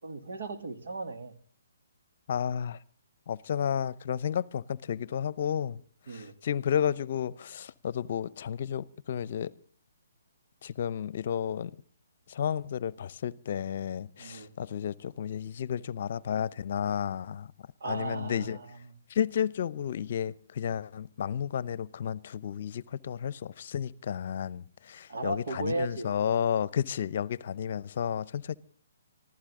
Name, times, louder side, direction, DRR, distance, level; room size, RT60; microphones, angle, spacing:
voice 1, 0.0-1.3 6.1-6.4 14.2-14.5 17.8-18.9 25.1-26.1, right 2 dB, 65° right, 2.8 m, -36 dB
voice 2, 2.3-2.8 3.3-5.8 6.1-9.5 10.6-11.7 12.3-17.5 17.9-18.6 19.1-28.6, left 8 dB, 50° left, 0.7 m, -32 dB
25.5 x 15.0 x 3.7 m
figure-of-eight pair, 135°, 0 cm